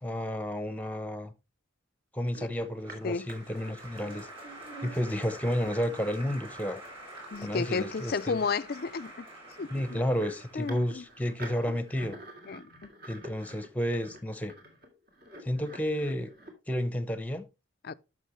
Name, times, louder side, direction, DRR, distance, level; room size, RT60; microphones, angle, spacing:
voice 1, 0.0-1.3 2.1-4.3 4.8-6.8 7.4-8.4 9.7-12.2 13.1-14.5 15.4-16.3 16.7-17.4, equal, 5° left, 0.8 m, -31 dB
sound 1, 2.3-6.0 7.3-7.4 7.8-7.9 8.7-16.5, right 1 dB, 50° right, 2.5 m, -48 dB
Applause, 2.8-11.9, right 1 dB, 25° right, 5.7 m, -47 dB
voice 2, 7.3-9.3 9.6-10.0 10.6-11.0 12.5-12.7 17.8-17.9, left 5 dB, 45° left, 0.4 m, -32 dB
12.0 x 6.2 x 3.1 m
head